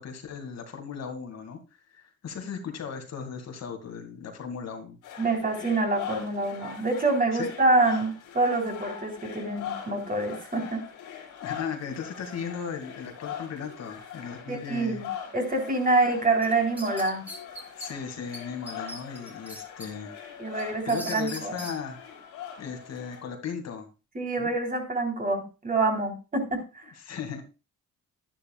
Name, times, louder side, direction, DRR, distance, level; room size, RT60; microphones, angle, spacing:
voice 1, 0.0-1.6 1.9-5.0 7.3-7.5 11.4-15.0 17.8-20.1 20.5-22.1 22.6-23.9 24.4-24.5 27.0-27.4, left 6 dB, 60° left, 4 dB, 2.2 m, -36 dB
sound 1, 5.0-23.2, left 9 dB, 90° left, 3.8 m, -41 dB
voice 2, 5.2-10.8 14.5-15.1 15.3-17.2 20.4-21.6 24.2-26.9, right 2 dB, 30° right, 3 dB, 3.6 m, -26 dB
sound 2, 16.4-17.9 18.3-18.4 18.7-19.9 20.3-21.8, equal, 5° right, 3.0 m, -40 dB
11.0 x 10.5 x 2.3 m, 0.30 s
cardioid pair, 90°, 30 cm